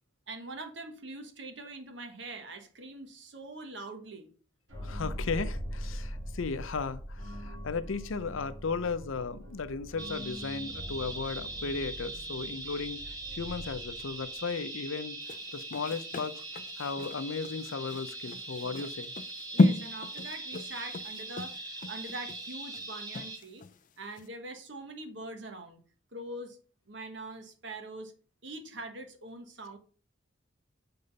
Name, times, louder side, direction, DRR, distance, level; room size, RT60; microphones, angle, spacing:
voice 1, 0.3-4.3 19.5-23.6 24.0-25.8 26.1-26.6 26.9-28.1 28.4-29.8, right 2 dB, 65° right, 1.4 m, -43 dB
sound 1, 4.7-14.4, equal, 90° right, 2.9 m, -41 dB
voice 2, 4.8-13.0 13.4-15.2 15.5-16.4 16.8-19.1, left 4 dB, 90° left, 0.6 m, -35 dB
sound 2, 10.0-23.4, right 2 dB, 20° right, 1.2 m, -41 dB
sound 3, 15.2-23.8 24.2-24.3, left 2 dB, 40° left, 0.4 m, -32 dB
6.8 x 3.9 x 5.4 m
head